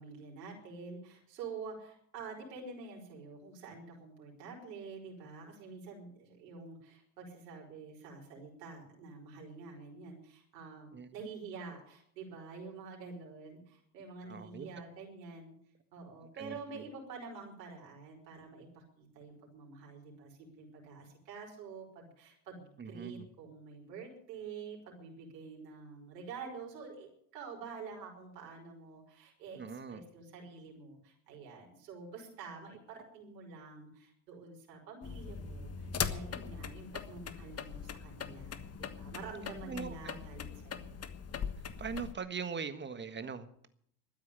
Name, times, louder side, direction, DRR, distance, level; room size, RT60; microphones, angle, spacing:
voice 1, 0.0-15.5 15.9-40.9, right 4 dB, 80° right, -1 dB, 4.7 m, -48 dB
voice 2, 14.2-14.7 16.4-16.9 22.8-23.3 29.5-30.0 39.6-40.2 41.8-43.7, right 6 dB, 20° right, 11 dB, 1.6 m, -41 dB
sound 1, 35.0-42.1, left 7 dB, 30° left, 1.4 m, -41 dB
12.5 x 9.5 x 9.7 m, 0.65 s
hypercardioid pair, 90°, 49 cm